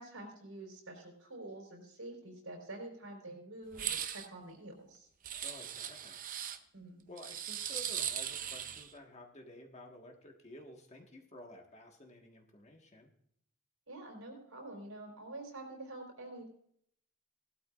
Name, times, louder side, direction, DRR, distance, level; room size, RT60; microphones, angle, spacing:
voice 1, 0.0-5.1 6.7-7.1 13.9-16.5, right 2 dB, 70° right, 1 dB, 4.2 m, -47 dB
sound 1, 3.7-4.3 5.2-6.6 7.2-8.9, right 9 dB, 40° right, 0.6 m, -39 dB
voice 2, 5.4-6.2 7.1-13.1, left 1 dB, 30° left, 2 dB, 1.5 m, -52 dB
17.5 x 12.5 x 2.5 m, 0.68 s
head